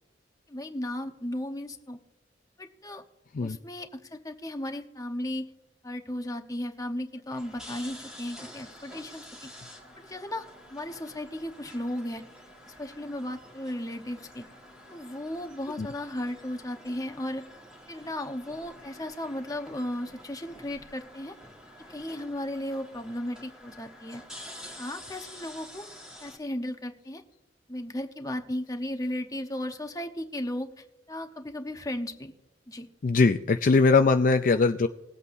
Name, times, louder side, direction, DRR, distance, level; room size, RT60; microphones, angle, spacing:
voice 1, 0.5-2.0 2.6-3.0 3.4-5.5 5.8-9.5 10.0-12.2 12.7-14.4 14.9-17.5 17.9-21.3 21.9-24.2 24.8-25.9 26.2-27.2 27.7-32.3 32.7-32.9, left 1 dB, 20° left, 5 dB, 0.9 m, -35 dB
sound 1, 7.3-26.4, left 1 dB, 5° right, 1.9 m, -48 dB
voice 2, 33.0-34.9, left 4 dB, 45° left, 7 dB, 0.4 m, -21 dB
20.5 x 8.3 x 2.6 m, 0.97 s
head